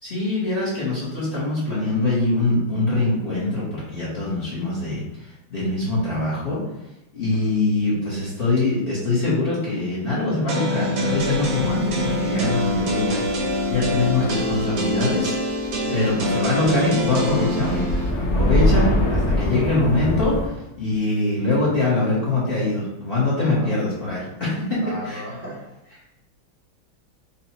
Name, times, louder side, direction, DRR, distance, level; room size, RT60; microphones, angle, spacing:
voice 1, 0.0-6.6 7.1-13.4 13.7-15.3 15.9-25.2, left 2 dB, 35° left, -9 dB, 1.1 m, -23 dB
voice 2, 7.3-7.9 15.8-16.1 19.2-19.7 23.3-23.8 24.8-26.2, equal, 45° right, -7 dB, 1.1 m, -37 dB
sound 1, 10.5-18.1, left 1 dB, 80° right, 1.7 m, -25 dB
sound 2, 11.2-15.8 16.1-16.2 16.7-20.5, left 1 dB, 60° left, 1.4 m, -25 dB
5.6 x 2.4 x 2.9 m, 0.92 s
omnidirectional pair, 2.1 m